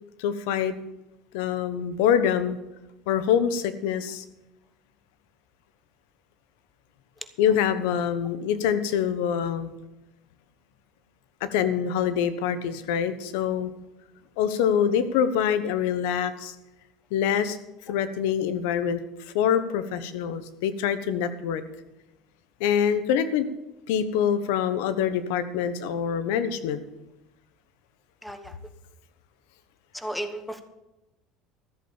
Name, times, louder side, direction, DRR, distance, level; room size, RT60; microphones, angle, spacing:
voice 1, 0.2-0.7 1.3-2.6 3.1-4.2 7.4-9.7 11.4-13.7 14.4-16.5 17.1-17.6 17.9-19.0 19.3-21.6 22.6-23.5 23.9-26.8, left 8 dB, 85° left, 13 dB, 1.2 m, -25 dB
voice 2, 28.2-28.5 29.9-30.6, right 1 dB, 5° left, 9 dB, 1.2 m, -34 dB
14.0 x 8.0 x 7.2 m, 0.97 s
cardioid pair, 145°, 0 cm